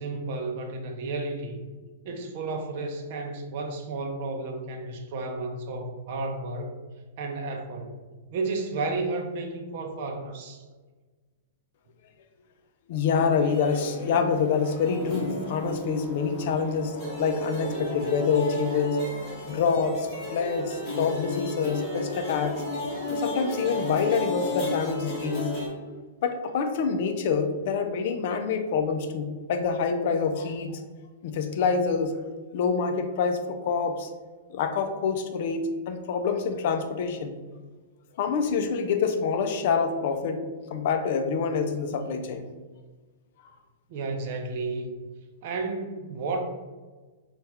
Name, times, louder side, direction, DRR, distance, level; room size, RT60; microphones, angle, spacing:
voice 1, 0.0-1.6 2.0-6.7 7.2-10.6 43.9-45.0 45.4-46.4, right 3 dB, 50° right, 3 dB, 0.6 m, -32 dB
voice 2, 12.9-19.0 19.5-22.5 23.1-25.5 26.2-30.8 31.2-32.1 32.5-34.1 34.5-37.4 38.2-40.4 40.7-42.5, left 5 dB, 55° left, 7 dB, 0.5 m, -26 dB
sound 1, 13.3-25.7, left 1 dB, 25° left, 1.4 m, -34 dB
4.1 x 2.3 x 3.5 m, 1.3 s
hypercardioid pair, 145°, 0 cm